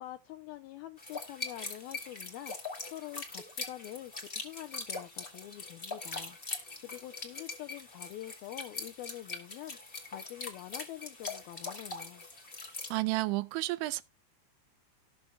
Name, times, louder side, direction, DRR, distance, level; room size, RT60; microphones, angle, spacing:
voice 1, 0.0-12.2, left 14 dB, 85° left, 2.2 m, -46 dB
sound 1, 1.0-13.0, left 3 dB, 20° left, 1.4 m, -42 dB
voice 2, 12.9-14.0, right 20 dB, 90° right, 3.0 m, -31 dB
18.5 x 6.9 x 2.3 m
omnidirectional pair, 5.2 m